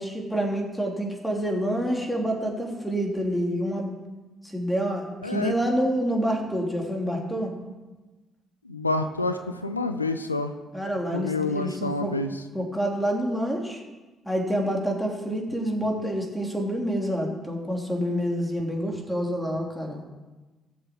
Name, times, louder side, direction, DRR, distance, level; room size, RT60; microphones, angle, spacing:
voice 1, 0.0-3.9 4.5-7.5 10.7-12.1 12.5-13.8 14.2-20.0, equal, 5° left, 0 dB, 3.1 m, -27 dB
voice 2, 5.2-5.5 8.6-10.5 11.1-12.4, left 2 dB, 90° left, 8 dB, 0.4 m, -28 dB
17.5 x 7.1 x 4.7 m, 1.2 s
figure-of-eight pair, 45°, 0 cm